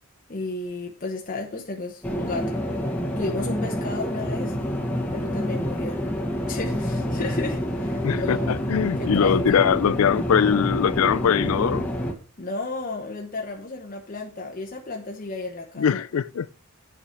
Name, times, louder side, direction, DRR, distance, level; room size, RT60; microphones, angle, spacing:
voice 1, 0.3-2.6 3.2-4.6 5.1-6.0 6.5-8.6 9.0-9.6 12.4-16.0, left 3 dB, 40° left, 0.9 m, -33 dB
sound 1, 2.0-12.1, equal, 10° left, 1.2 m, -27 dB
voice 2, 8.0-11.9 15.8-16.5, left 7 dB, 80° left, 0.4 m, -22 dB
8.4 x 4.9 x 5.7 m
head